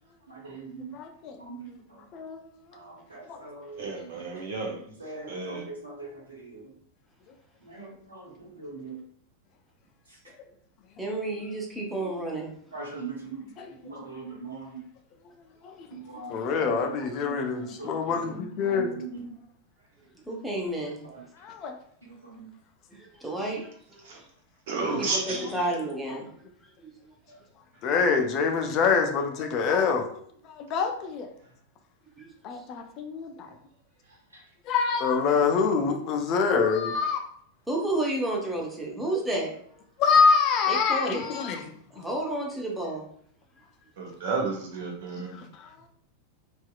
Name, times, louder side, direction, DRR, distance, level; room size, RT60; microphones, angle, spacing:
voice 1, 0.3-0.9 1.4-2.0 2.7-3.8 4.2-4.3 5.0-6.7 7.6-9.0 12.7-13.4 13.8-14.8 15.9-16.8 17.2-19.3 22.0-22.5, right 4 dB, 75° right, -4 dB, 0.9 m, -41 dB
voice 2, 0.9-1.4 2.1-2.4 3.3-3.4 13.6-13.7 15.6-15.9 16.3-18.9 21.4-21.7 27.8-30.1 30.4-31.3 32.4-33.3 34.7-37.2 40.0-41.6 45.3-45.7, left 5 dB, 35° left, 4 dB, 0.4 m, -25 dB
voice 3, 3.8-4.8 5.3-5.6 24.0-24.2 24.7-25.4 44.0-45.3, right 4 dB, 55° right, 1 dB, 0.6 m, -31 dB
voice 4, 11.0-12.5 20.3-21.0 22.9-24.2 24.8-24.9 25.3-26.3 27.0-27.1 32.2-32.3 37.7-39.5 40.7-41.2 41.9-43.1, right 1 dB, 5° right, -2 dB, 0.7 m, -31 dB
2.7 x 2.3 x 2.2 m, 0.62 s
figure-of-eight pair, 90°, 0 cm